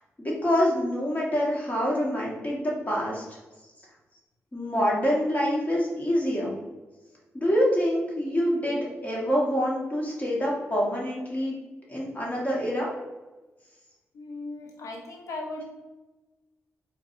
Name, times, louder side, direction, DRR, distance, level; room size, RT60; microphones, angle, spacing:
voice 1, 0.2-3.2 4.5-6.6 7.3-11.6 11.9-12.9, equal, 30° left, -4 dB, 1.4 m, -26 dB
voice 2, 14.1-15.6, left 2 dB, 80° left, 1 dB, 0.7 m, -37 dB
4.5 x 2.3 x 2.7 m, 1.1 s
cardioid pair, 60°, 5 cm